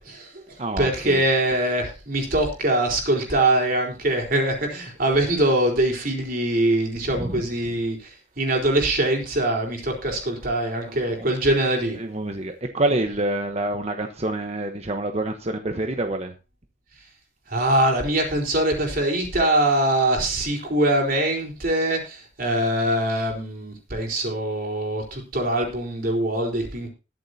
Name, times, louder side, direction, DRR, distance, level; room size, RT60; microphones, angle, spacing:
voice 1, 0.0-12.0 17.5-26.9, right 1 dB, 50° right, 1 dB, 4.2 m, -23 dB
voice 2, 0.6-1.2 7.1-7.5 10.8-11.3 11.9-16.3, right 1 dB, 35° right, 5 dB, 1.1 m, -27 dB
21.5 x 7.5 x 2.8 m, 0.30 s
head